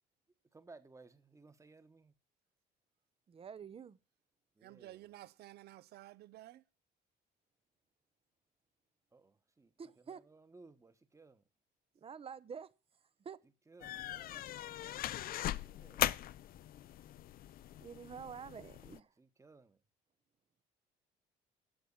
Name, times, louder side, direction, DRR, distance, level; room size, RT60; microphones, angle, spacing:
voice 1, 0.5-2.1 4.6-5.0 9.1-9.7 10.1-11.4 13.7-16.1 18.2-18.4 19.2-19.8, right 3 dB, 15° right, 1.3 m, -60 dB
voice 2, 3.3-4.0 9.8-10.2 11.9-12.7 13.2-13.4 17.8-19.1, right 7 dB, 35° right, 0.8 m, -48 dB
voice 3, 4.6-6.6, right 15 dB, 70° right, 0.8 m, -53 dB
sound 1, 13.8-19.0, left 13 dB, 60° left, 0.6 m, -40 dB
11.5 x 6.3 x 8.6 m
cardioid pair, 110°, 17 cm